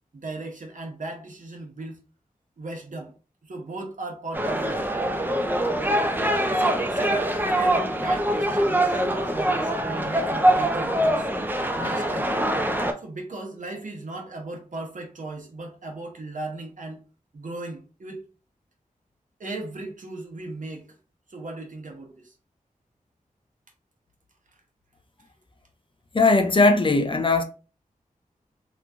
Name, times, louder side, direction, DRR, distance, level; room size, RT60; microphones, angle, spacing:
voice 1, 0.1-2.0 2.6-3.1 3.4-4.9 6.5-11.3 11.7-12.3 13.0-17.0 17.3-18.2 19.4-20.9 21.3-22.3, right 2 dB, 60° right, 0.9 m, -36 dB
sound 1, 4.3-12.9, right 1 dB, 15° right, 0.5 m, -24 dB
voice 2, 26.1-27.4, left 3 dB, 35° left, 0.5 m, -19 dB
3.0 x 2.2 x 2.5 m
cardioid pair, 40°, 15 cm